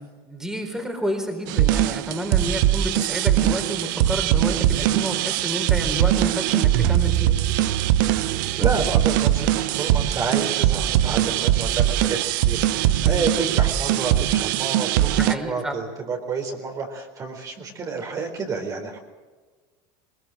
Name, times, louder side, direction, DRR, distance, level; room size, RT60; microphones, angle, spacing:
voice 1, 0.3-7.3 13.0-13.3 15.1-15.8, equal, 5° right, 4 dB, 4.1 m, -30 dB
sound 1, 1.5-15.3, right 12 dB, 75° right, 1.0 m, -21 dB
voice 2, 8.6-19.0, right 4 dB, 35° right, 3 dB, 4.2 m, -30 dB
21.5 x 21.0 x 7.5 m, 1.4 s
supercardioid pair, 115°, 11 cm